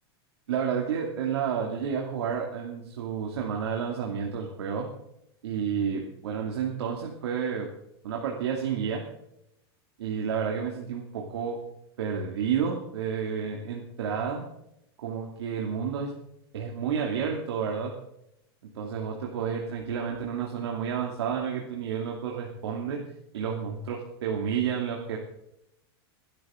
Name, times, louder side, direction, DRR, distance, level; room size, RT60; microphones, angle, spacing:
voice 1, 0.5-4.9 5.4-7.7 8.0-9.0 10.0-11.6 12.0-14.4 15.0-16.1 16.5-17.9 18.7-23.0 23.3-25.2, right 7 dB, 85° right, -1 dB, 2.7 m, -30 dB
26.5 x 12.0 x 3.8 m, 0.82 s
supercardioid pair, 175°, 13 cm